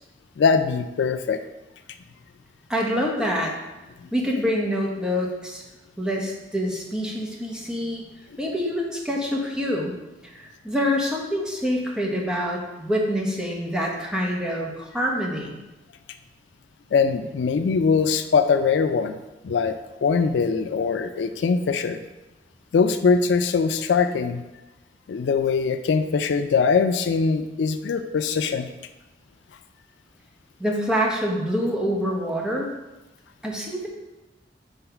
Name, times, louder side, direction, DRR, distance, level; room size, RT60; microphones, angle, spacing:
voice 1, 0.4-1.4 4.0-4.1 16.9-19.2 19.4-22.0 22.7-24.4 25.1-28.7, left 5 dB, 80° left, 9 dB, 0.4 m, -22 dB
voice 2, 2.7-3.6 4.1-5.6 6.0-8.0 8.4-9.9 10.2-15.5 30.6-32.7 33.4-33.9, equal, 5° right, -2 dB, 0.8 m, -26 dB
4.2 x 4.0 x 5.6 m, 1.0 s
head